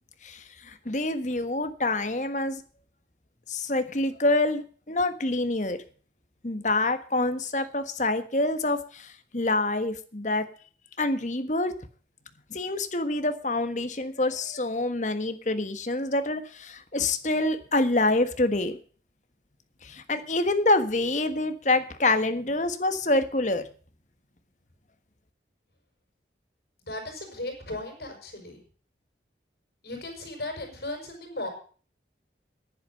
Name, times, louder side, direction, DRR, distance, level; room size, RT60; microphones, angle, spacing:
voice 1, 0.7-2.6 3.5-5.8 6.4-9.1 9.3-10.4 11.0-11.7 12.5-18.7 19.8-23.6, left 2 dB, 40° left, 9 dB, 1.4 m, -26 dB
voice 2, 26.9-28.6 29.8-31.5, left 2 dB, 60° left, 3 dB, 6.4 m, -36 dB
11.0 x 10.5 x 7.8 m, 0.42 s
head